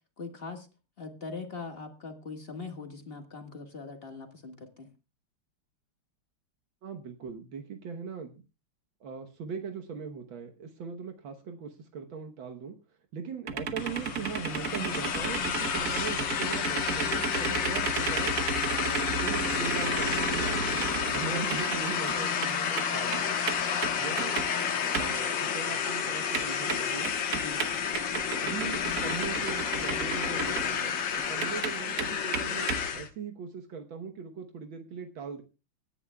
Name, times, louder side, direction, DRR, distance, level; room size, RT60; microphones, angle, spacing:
voice 1, 0.2-0.7 1.0-4.9 27.3-27.6, left 4 dB, 30° left, 5 dB, 1.6 m, -41 dB
voice 2, 6.8-8.4 9.0-12.7 13.1-18.3 18.7-20.8 21.1-23.3 24.0-24.4 25.0-27.1 28.4-35.4, right 6 dB, 75° right, 5 dB, 1.9 m, -40 dB
sound 1, 13.5-22.5 22.8-24.6 24.9-25.3 25.6-25.7 26.0-26.1 26.3-30.8 31.1-32.9, right 5 dB, 50° right, 1.3 m, -33 dB
sound 2, 13.8-33.1, left 7 dB, 65° left, 2.0 m, -30 dB
25.0 x 10.0 x 2.3 m, 0.31 s
omnidirectional pair, 2.2 m